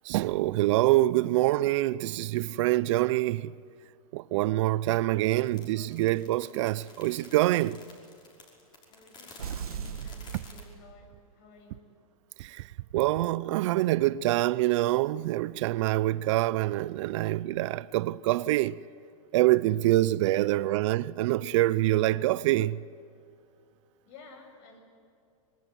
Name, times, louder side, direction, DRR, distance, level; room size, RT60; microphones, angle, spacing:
voice 1, 0.0-3.5 4.1-7.8 12.4-12.7 12.9-18.8 19.3-22.8, right 16 dB, 55° right, 0.6 m, -25 dB
voice 2, 5.1-6.0 8.9-11.9 20.2-20.6 24.1-24.8, left 3 dB, 50° left, 7.2 m, -53 dB
sound 1, 5.4-10.6, left 3 dB, 25° left, 5.6 m, -52 dB
sound 2, 9.4-11.3, right 7 dB, 90° right, 1.9 m, -39 dB
25.0 x 22.5 x 9.3 m
hypercardioid pair, 130°, 18 cm